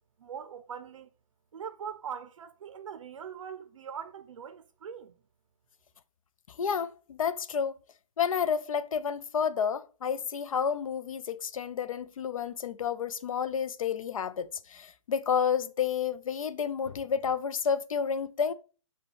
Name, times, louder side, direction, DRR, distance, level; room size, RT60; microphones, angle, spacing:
voice 1, 0.2-1.1 1.5-5.1, right 7 dB, 70° right, 0.5 m, -41 dB
voice 2, 6.6-7.8 8.2-18.5, left 7 dB, 80° left, 0.5 m, -30 dB
5.1 x 2.3 x 4.6 m
hypercardioid pair, 175°, 17 cm